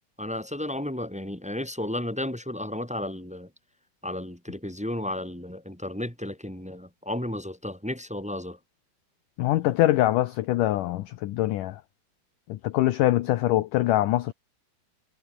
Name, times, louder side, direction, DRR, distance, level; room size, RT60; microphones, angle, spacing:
voice 1, 0.2-3.5 4.0-8.6, left 1 dB, ahead, 3.5 m, -33 dB
voice 2, 9.4-11.8 12.5-14.3, left 15 dB, 75° left, 2.0 m, -23 dB
omnidirectional pair, 4.8 m